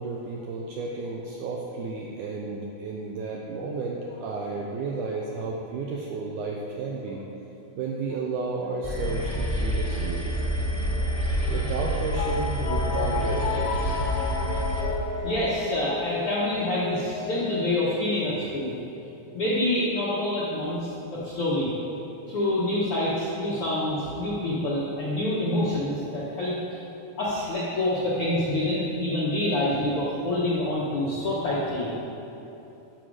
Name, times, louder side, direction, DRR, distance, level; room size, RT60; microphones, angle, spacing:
voice 1, 0.0-7.2 7.8-10.2 11.5-14.0, right 3 dB, 85° right, -2 dB, 1.8 m, -32 dB
sound 1, 8.8-14.8, equal, 25° left, 1.1 m, -27 dB
sound 2, 12.2-17.7, left 5 dB, 90° left, 1.8 m, -32 dB
voice 2, 15.2-18.7 19.3-21.7 22.3-26.6 27.2-31.9, left 1 dB, 70° left, -8 dB, 1.3 m, -27 dB
11.5 x 6.2 x 4.8 m, 2.9 s
omnidirectional pair, 4.3 m